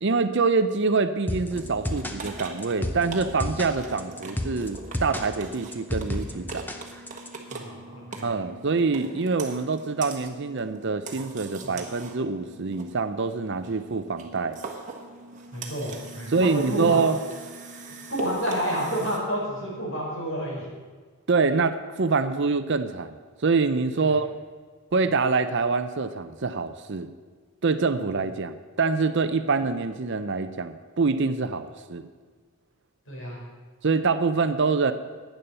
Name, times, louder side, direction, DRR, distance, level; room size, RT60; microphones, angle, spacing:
voice 1, 0.0-6.7 8.2-14.6 16.3-17.2 21.3-24.3 24.9-27.1 27.6-32.1 33.8-34.9, right 4 dB, 55° right, 11 dB, 0.6 m, -25 dB
sound 1, 1.3-7.3, left 1 dB, 10° left, 0.7 m, -32 dB
sound 2, 1.5-19.2, right 3 dB, 35° right, 1.4 m, -42 dB
voice 2, 7.5-8.4 11.6-11.7 15.5-17.0 18.1-20.7 24.0-24.1 33.1-33.4, equal, 55° left, -3 dB, 4.7 m, -30 dB
11.0 x 9.2 x 6.7 m, 1.5 s
head